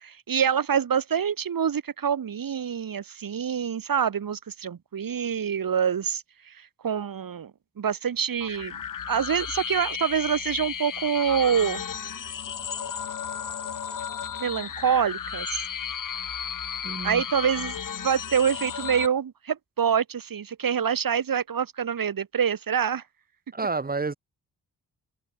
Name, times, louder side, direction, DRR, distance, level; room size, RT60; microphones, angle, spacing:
voice 1, 0.0-6.5 6.8-7.5 7.8-8.8 9.1-11.8 14.4-15.6 17.0-17.8 18.0-23.0, right 7 dB, 60° right, 1.5 m, -26 dB
sound 1, 8.4-19.1, left 8 dB, 55° left, 1.2 m, -34 dB
voice 2, 16.8-17.2 23.5-24.1, right 3 dB, 25° right, 1.3 m, -29 dB
wide cardioid pair, 160°, 39 cm